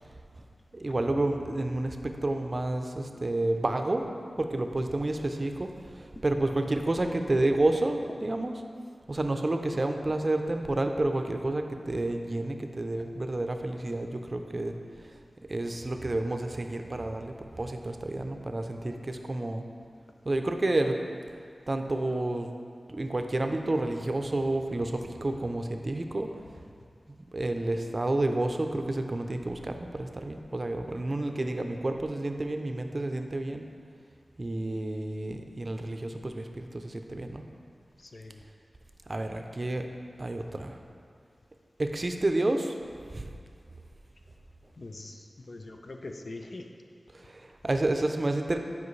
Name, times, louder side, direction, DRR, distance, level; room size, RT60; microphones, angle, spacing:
voice 1, 0.7-4.1 4.4-8.5 9.1-14.7 15.0-15.1 15.5-19.6 20.2-21.0 21.7-22.5 22.9-26.3 27.3-33.7 34.4-37.4 39.1-39.9 40.2-40.8 41.8-42.8 43.1-43.3 47.1-48.6, right 2 dB, 40° right, 5 dB, 0.5 m, -30 dB
voice 2, 38.0-38.4 44.8-46.7, left 2 dB, 60° left, 4 dB, 0.5 m, -43 dB
10.5 x 5.1 x 3.2 m, 2.2 s
wide cardioid pair, 85°, 0 cm